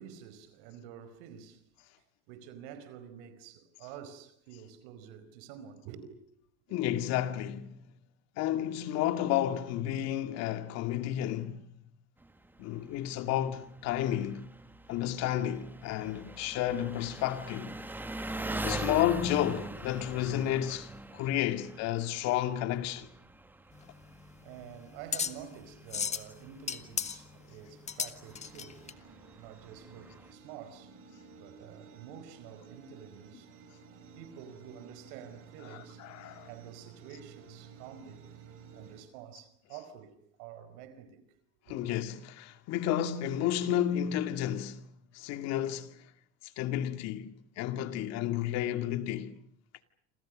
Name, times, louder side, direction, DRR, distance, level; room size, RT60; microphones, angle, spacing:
voice 1, 0.0-1.6 2.3-6.2 6.7-6.8 18.4-19.0 24.1-31.0 31.4-33.5 34.1-36.0 36.5-38.3 38.7-41.3 41.7-41.9, right 9 dB, 75° right, 4.8 m, -49 dB
voice 2, 6.7-7.8 8.4-11.7 12.6-14.5 14.9-17.8 18.6-23.1 35.7-36.5 41.7-44.8 45.1-46.0 46.6-49.3, left 11 dB, 60° left, 2.3 m, -31 dB
Engine, 12.2-30.3, right 2 dB, 5° right, 1.4 m, -44 dB
sound 1, 23.7-28.9, left 7 dB, 20° left, 1.5 m, -37 dB
sound 2, 28.3-39.0, right 5 dB, 45° right, 6.8 m, -54 dB
28.5 x 27.0 x 6.5 m
supercardioid pair, 130°, 30 cm